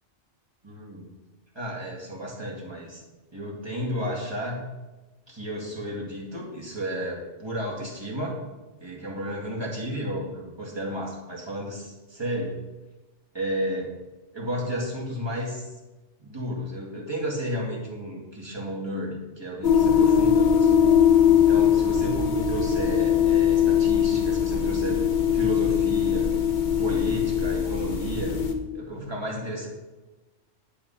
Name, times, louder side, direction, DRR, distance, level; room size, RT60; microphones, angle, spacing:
voice 1, 0.6-1.1 1.5-3.0 3.3-4.7 5.3-8.4 8.8-12.6 13.3-13.9 14.3-15.7 16.2-20.8 21.5-25.0 25.3-26.3 26.8-28.3 28.7-29.7, equal, 20° right, -4 dB, 2.1 m, -32 dB
sound 1, 19.6-28.5, left 8 dB, 40° left, 1.0 m, -21 dB
10.5 x 4.7 x 5.6 m, 1.1 s
omnidirectional pair, 1.2 m